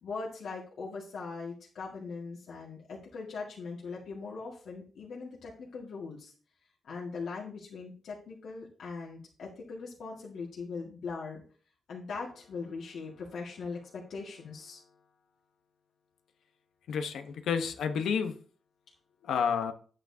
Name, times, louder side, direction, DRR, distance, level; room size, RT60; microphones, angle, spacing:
voice 1, 0.0-6.3 6.8-11.4 11.9-15.0, left 4 dB, 70° left, 1.9 m, -40 dB
voice 2, 16.9-18.3 19.2-19.7, left 6 dB, 90° left, 1.0 m, -30 dB
10.5 x 8.7 x 2.8 m
wide cardioid pair, 140°, 0 cm